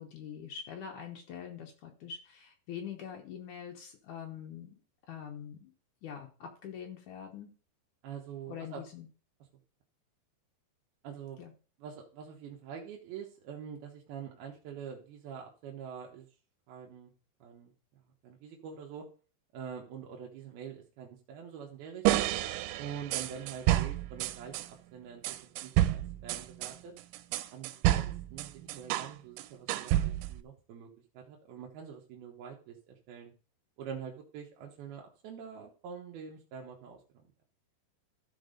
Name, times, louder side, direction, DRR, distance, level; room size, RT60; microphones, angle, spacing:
voice 1, 0.0-4.8 5.1-5.7 6.0-7.5 8.5-9.1 11.4-11.5, left 8 dB, 90° left, 2 dB, 1.7 m, -44 dB
voice 2, 8.0-8.8 11.0-11.4 11.8-16.3 16.7-17.1 17.4-19.1 19.5-22.3 22.8-26.9 27.5-30.9 31.1-33.3 33.8-37.3, right 7 dB, 70° right, 0 dB, 2.7 m, -45 dB
sound 1, 22.1-24.7 25.2-29.1 29.4-30.4, right 14 dB, 90° right, 3.0 m, -29 dB
14.0 x 4.6 x 5.2 m, 0.37 s
omnidirectional pair, 5.2 m